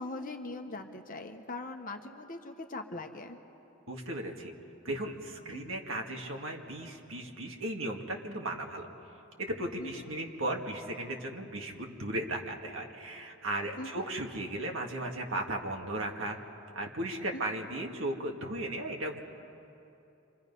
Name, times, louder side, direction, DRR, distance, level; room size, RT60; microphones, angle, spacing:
voice 1, 0.0-3.4 5.5-5.8 9.8-10.1 13.8-13.9 17.3-17.6, left 2 dB, 40° left, 5 dB, 1.2 m, -41 dB
voice 2, 3.9-4.5 4.8-8.9 9.4-16.4 16.7-19.2, right 1 dB, 65° right, 2 dB, 2.0 m, -36 dB
29.0 x 25.0 x 5.5 m, 2.8 s
head